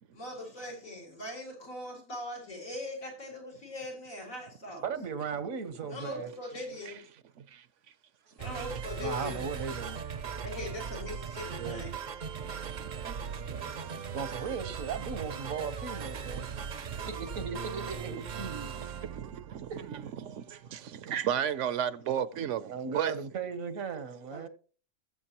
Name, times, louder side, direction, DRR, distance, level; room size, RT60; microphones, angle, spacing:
voice 1, 0.1-4.9 5.9-7.0 8.4-9.4 10.4-11.9 24.3-24.4, left 1 dB, 85° left, 4.4 m, -41 dB
voice 2, 4.8-6.3 9.0-10.0 11.6-11.8 14.1-16.5 17.1-18.8 19.7-19.9 22.6-24.5, right 6 dB, 85° right, 1.5 m, -37 dB
sound 1, 8.4-20.0, right 6 dB, 45° right, 0.6 m, -39 dB
voice 3, 12.4-14.0 16.2-17.1 18.6-23.1, right 9 dB, 70° right, 0.9 m, -35 dB
19.5 x 7.4 x 2.9 m
omnidirectional pair, 1.4 m